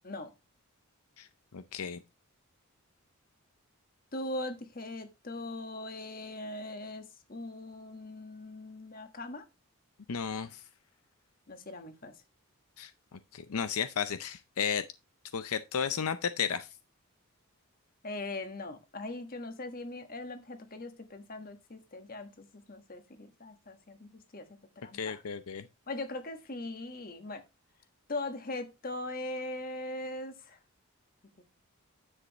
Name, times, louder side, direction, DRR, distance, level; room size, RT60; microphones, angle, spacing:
voice 1, 1.5-2.0 10.1-10.6 12.8-14.8 15.3-16.7 24.9-25.7, left 7 dB, 75° left, 0.6 m, -33 dB
voice 2, 4.1-9.4 11.5-12.1 18.0-25.2 25.9-27.4 28.1-30.6 31.4-31.5, left 2 dB, 40° left, 1.4 m, -40 dB
9.8 x 7.7 x 3.0 m
head